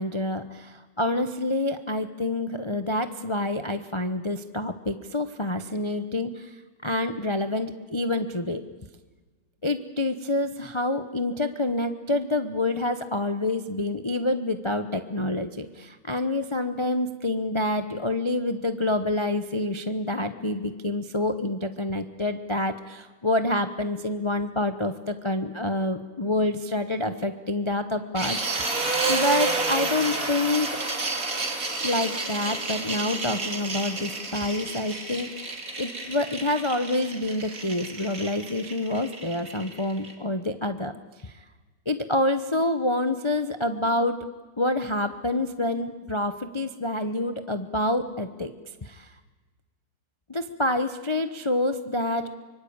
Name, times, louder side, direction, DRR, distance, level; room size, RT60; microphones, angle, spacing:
voice 1, 0.0-6.6 6.8-8.6 9.6-28.8 29.1-30.8 31.8-40.9 41.2-41.3 41.9-44.2 44.6-48.5 48.8-49.1 50.3-52.3, left 2 dB, 50° left, 9 dB, 0.3 m, -27 dB
sound 1, 28.1-40.1, right 3 dB, 40° right, 3.3 m, -30 dB
24.5 x 24.5 x 8.8 m, 1.3 s
omnidirectional pair, 2.4 m